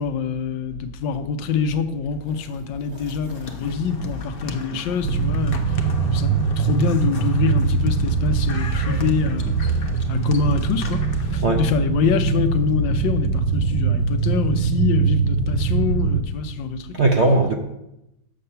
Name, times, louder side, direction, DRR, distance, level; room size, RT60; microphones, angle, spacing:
voice 1, 0.0-9.6 10.1-16.9, left 6 dB, 80° left, 1.4 m, -25 dB
sound 1, 3.3-11.4, left 4 dB, 50° left, 0.6 m, -38 dB
voice 2, 3.3-3.8 4.7-4.8 5.8-6.5 11.4-11.6 16.5-16.6 16.9-17.5, right 2 dB, 60° right, 0.7 m, -22 dB
sound 2, 5.0-16.2, right 5 dB, 85° right, 1.4 m, -22 dB
7.6 x 6.7 x 5.6 m
omnidirectional pair, 2.0 m